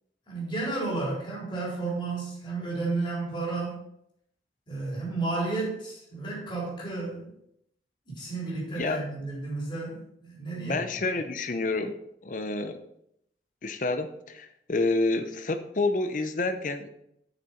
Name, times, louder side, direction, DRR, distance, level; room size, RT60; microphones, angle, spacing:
voice 1, 0.3-3.8 4.7-7.3 8.1-10.8, right 3 dB, 30° left, -6 dB, 4.0 m, -32 dB
voice 2, 10.6-12.0 12.2-12.8 13.6-16.9, left 3 dB, 45° left, 8 dB, 0.6 m, -28 dB
8.4 x 6.6 x 4.4 m, 0.74 s
head